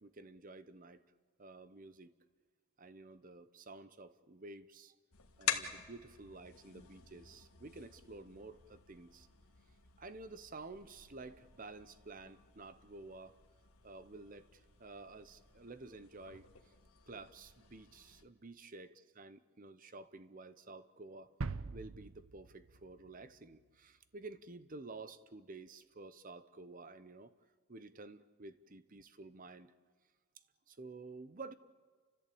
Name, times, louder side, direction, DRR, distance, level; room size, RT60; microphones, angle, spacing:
voice 1, 0.0-1.0 1.4-2.1 2.8-5.0 5.4-9.3 10.0-13.3 13.8-16.5 17.1-21.3 21.7-27.3 27.7-29.7 30.7-31.5, right 3 dB, 40° right, 14 dB, 0.8 m, -51 dB
sound 1, 5.1-18.3, left 9 dB, 80° left, 1.7 m, -47 dB
sound 2, 21.4-23.2 23.5-23.6, right 3 dB, 70° right, 0.7 m, -43 dB
30.0 x 14.0 x 8.6 m, 1.6 s
head